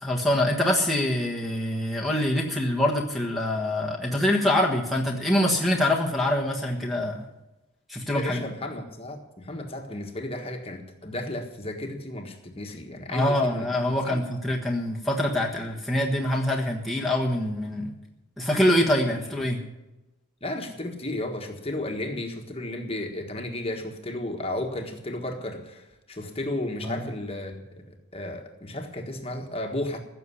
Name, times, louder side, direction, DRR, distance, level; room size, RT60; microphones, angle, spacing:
voice 1, 0.0-7.2 7.9-8.4 13.1-17.9 18.4-19.6 26.8-27.1, left 1 dB, ahead, 1 dB, 1.3 m, -25 dB
voice 2, 8.1-14.2 19.1-19.3 20.4-30.0, left 1 dB, 25° left, 3 dB, 1.5 m, -34 dB
15.5 x 6.7 x 9.8 m, 0.99 s
head